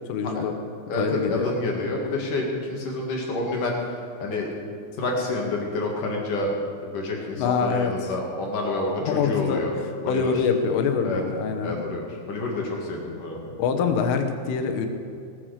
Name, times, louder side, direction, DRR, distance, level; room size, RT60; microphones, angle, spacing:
voice 1, 0.1-0.5 0.9-1.6 7.4-7.9 9.0-9.6 10.1-11.7 13.6-14.9, left 6 dB, 80° left, 6 dB, 3.7 m, -24 dB
voice 2, 0.9-3.8 4.2-4.5 5.0-6.6 6.8-9.7 10.0-10.4 11.0-11.2 11.6-13.5, left 2 dB, 55° left, -1 dB, 2.7 m, -28 dB
19.0 x 9.2 x 6.6 m, 2.5 s
omnidirectional pair, 5.7 m